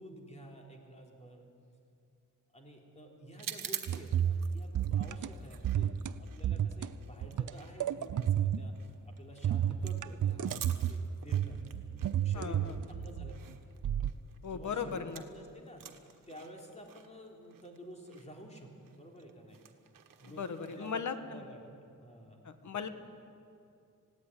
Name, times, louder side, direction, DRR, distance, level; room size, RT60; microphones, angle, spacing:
voice 1, 0.0-1.5 2.5-11.6 12.0-13.6 14.4-15.9 16.3-19.6 20.2-22.4, right 1 dB, 20° left, 1 dB, 3.5 m, -50 dB
sound 1, 3.3-15.4 15.7-21.0, right 9 dB, 90° right, 1.4 m, -49 dB
sound 2, 3.9-4.5 4.7-5.3 5.6-6.1 6.4-6.9 7.2-8.8 9.4-11.0 11.3-13.4 13.8-14.1, right 10 dB, 65° right, 0.7 m, -31 dB
voice 2, 12.3-12.7 14.4-15.2 20.4-21.4 22.4-22.9, left 6 dB, 65° left, 10 dB, 1.4 m, -37 dB
19.0 x 16.5 x 9.9 m, 2.6 s
wide cardioid pair, 115°, 32 cm